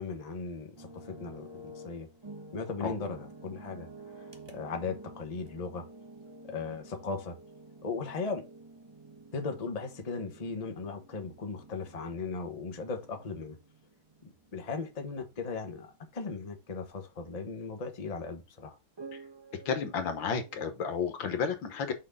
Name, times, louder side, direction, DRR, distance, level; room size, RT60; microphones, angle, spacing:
voice 1, 0.0-2.1 2.5-3.9 4.5-5.8 6.5-7.3 7.8-8.4 9.3-13.6 14.5-18.8, left 4 dB, 25° left, 1.0 m, -37 dB
sound 1, 0.8-16.3 16.6-16.8 19.0-20.7, right 2 dB, 40° right, 0.3 m, -50 dB
voice 2, 19.7-21.9, left 6 dB, 70° left, 1.9 m, -32 dB
6.4 x 5.5 x 3.6 m
omnidirectional pair, 2.2 m